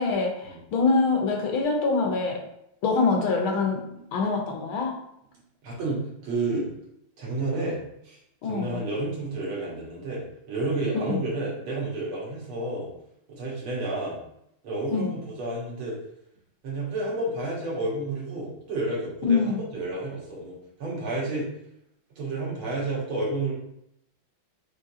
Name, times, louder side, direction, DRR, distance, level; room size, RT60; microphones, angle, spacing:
voice 1, 0.0-2.4 2.8-3.8 4.1-5.0 8.4-8.8 10.9-11.2 14.9-15.1 19.3-19.6, left 4 dB, 75° left, 1 dB, 1.7 m, -24 dB
voice 2, 5.6-6.7 7.2-7.8 8.0-12.9 13.3-14.2 14.6-16.0 16.6-21.5 22.2-23.5, right 2 dB, 75° right, -5 dB, 2.3 m, -30 dB
5.1 x 3.2 x 2.7 m, 0.77 s
omnidirectional pair, 2.3 m